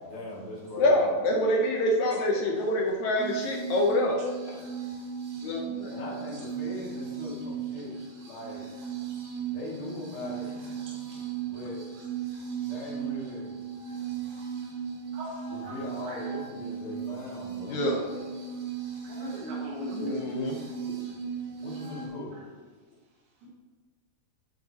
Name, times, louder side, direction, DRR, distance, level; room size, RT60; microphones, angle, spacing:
voice 1, 0.0-1.0 5.9-8.6 9.5-10.5 11.4-11.9 12.6-13.5 15.4-17.8 21.6-22.3, left 1 dB, 40° left, -6 dB, 2.9 m, -40 dB
voice 2, 0.8-4.6 5.4-5.9 17.6-18.0 19.9-20.6, left 1 dB, 70° left, 0 dB, 1.8 m, -26 dB
sound 1, 3.2-22.1, right 7 dB, 55° right, 3.0 m, -37 dB
voice 3, 15.1-15.7 16.0-16.2 19.0-20.2 23.4-23.5, left 1 dB, 80° right, -6 dB, 3.8 m, -39 dB
10.5 x 8.9 x 2.9 m, 1.4 s
omnidirectional pair, 4.3 m